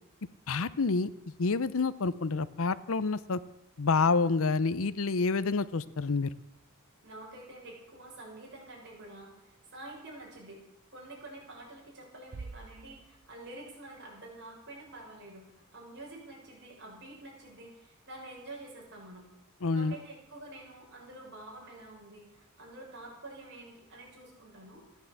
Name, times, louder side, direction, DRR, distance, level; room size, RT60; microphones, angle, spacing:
voice 1, 0.5-1.1 1.4-3.4 3.8-6.3 19.6-19.9, left 4 dB, 65° left, 16 dB, 0.7 m, -28 dB
voice 2, 7.0-10.6 10.9-19.3 19.7-24.8, right 2 dB, 55° right, -2 dB, 6.9 m, -48 dB
sound 1, 12.3-13.8, right 4 dB, 70° right, 0.6 m, -46 dB
15.5 x 10.5 x 8.5 m, 0.86 s
head